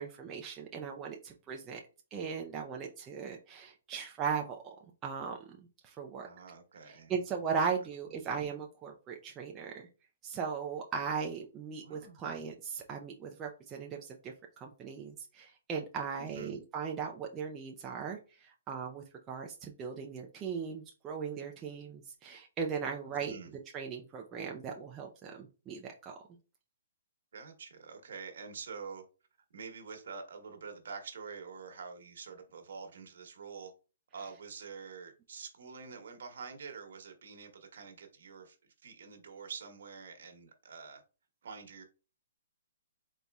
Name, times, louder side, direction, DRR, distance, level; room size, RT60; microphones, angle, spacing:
voice 1, 0.0-1.8 2.1-4.8 5.0-5.6 5.8-6.3 6.9-9.9 10.2-14.3 14.6-23.4 23.7-26.1, right 6 dB, 15° right, 0.4 m, -38 dB
voice 2, 6.2-7.1 11.8-12.4 16.2-16.6 23.1-23.5 27.3-29.0 29.5-33.7 34.1-41.0 41.4-41.8, right 5 dB, 60° right, 1.1 m, -47 dB
4.1 x 4.0 x 2.3 m
hypercardioid pair, 170°, 0 cm